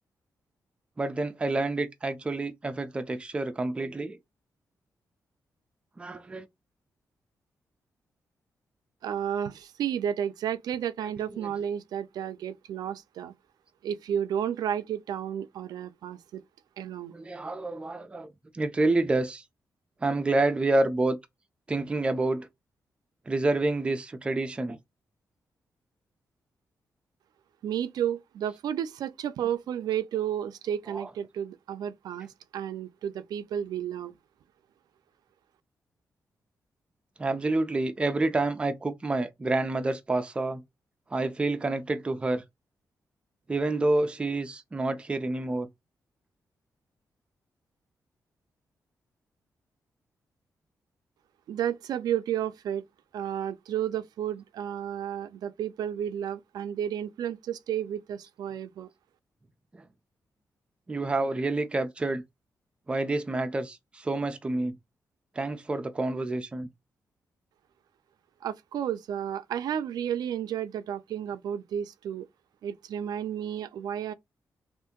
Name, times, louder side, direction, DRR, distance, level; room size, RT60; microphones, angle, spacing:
voice 1, 1.0-4.2 6.0-6.5 11.0-11.5 17.1-18.3 18.5-19.4 20.0-21.2 21.7-22.5 23.3-24.8 30.9-31.1 37.2-40.6 41.1-42.4 43.5-45.7 59.7-59.8 60.9-62.2 62.9-64.8 65.4-66.7, right 2 dB, 15° right, 0.4 m, -28 dB
voice 2, 9.0-13.3 13.8-16.4 16.8-17.1 27.6-34.1 51.5-52.8 53.1-58.9 68.4-72.3 72.6-74.1, right 9 dB, 90° right, 0.4 m, -32 dB
2.7 x 2.5 x 3.6 m
wide cardioid pair, 170°, 7 cm